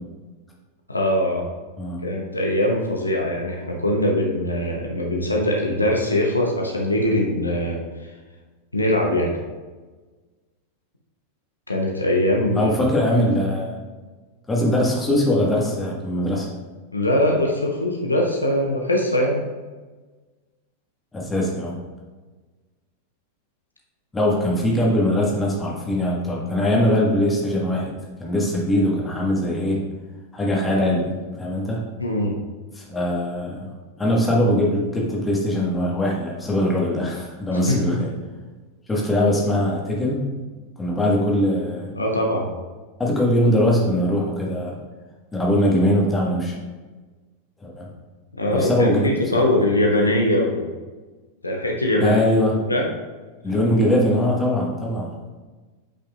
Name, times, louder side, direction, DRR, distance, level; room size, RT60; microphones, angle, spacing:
voice 1, 0.9-1.4 2.0-8.1 8.7-9.3 11.7-12.7 16.9-19.4 32.0-32.3 37.5-37.8 41.9-42.4 48.4-50.7 51.4-52.2 52.7-52.9, left 1 dB, 80° left, 0 dB, 0.9 m, -22 dB
voice 2, 12.5-13.8 14.5-16.5 21.1-21.7 24.1-27.9 28.2-29.8 30.3-31.1 31.4-31.8 32.7-33.7 34.0-38.1 38.9-40.2 40.8-41.9 43.0-44.8 45.3-46.5 47.6-47.9 48.5-49.5 52.0-52.5 53.4-55.1, left 1 dB, 15° left, -2 dB, 1.6 m, -21 dB
8.6 x 5.4 x 2.5 m, 1.3 s
figure-of-eight pair, 90°, 0 cm